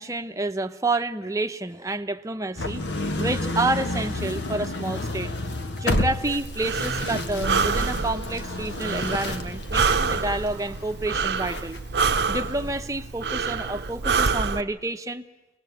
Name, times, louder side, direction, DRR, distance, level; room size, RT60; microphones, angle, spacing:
voice 1, 0.0-2.8 3.2-5.3 5.8-11.8 12.3-15.3, right 2 dB, 20° right, 8 dB, 0.8 m, -29 dB
sound 1, 2.6-12.8, left 1 dB, 70° left, 1.5 m, -31 dB
Breathing, 6.3-14.6, right 5 dB, 65° right, 0.7 m, -27 dB
25.5 x 19.5 x 8.1 m, 1.0 s
head